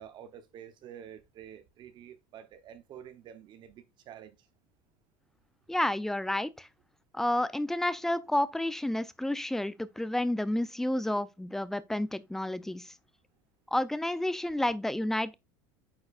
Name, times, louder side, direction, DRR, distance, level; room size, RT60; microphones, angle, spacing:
voice 1, 0.0-4.4, right 9 dB, 45° right, 0.8 m, -48 dB
voice 2, 5.7-6.7 7.1-12.9 13.7-15.3, left 1 dB, 5° left, 0.5 m, -30 dB
8.6 x 4.6 x 2.4 m
supercardioid pair, 125°, 11 cm